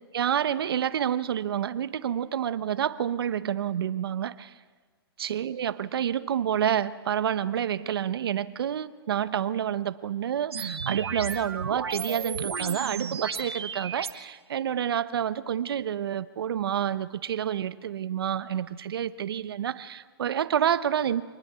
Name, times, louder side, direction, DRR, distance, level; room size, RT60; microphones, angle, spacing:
voice 1, 0.1-4.5 5.2-21.2, right 9 dB, 70° right, 15 dB, 1.0 m, -28 dB
sound 1, 10.5-14.1, right 6 dB, 85° right, 1.3 m, -33 dB
25.5 x 19.5 x 6.9 m, 1.4 s
hypercardioid pair, 135°, 13 cm